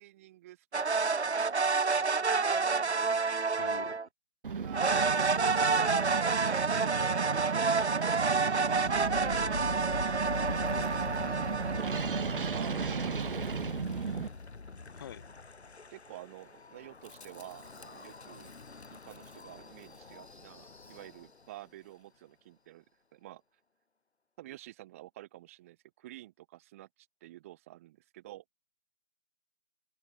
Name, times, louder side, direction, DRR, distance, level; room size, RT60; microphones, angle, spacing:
voice 1, 0.0-2.8 4.5-6.7 7.2-9.7 12.5-13.5 15.9-18.6 18.9-22.8 23.1-23.4 24.4-28.4, right 15 dB, 15° right, 2.4 m, -50 dB
sound 1, 0.7-4.1 4.7-12.9, right 4 dB, 80° right, 1.1 m, -29 dB
voice 2, 3.6-4.0 10.7-10.9 11.3-12.3 14.9-15.2, left 10 dB, 20° left, 4.6 m, -47 dB
sound 2, 4.4-14.3, right 5 dB, 55° right, 0.5 m, -35 dB
Wind, 8.6-21.5, left 4 dB, 75° left, 1.5 m, -43 dB
open air
figure-of-eight pair, 160°, 33 cm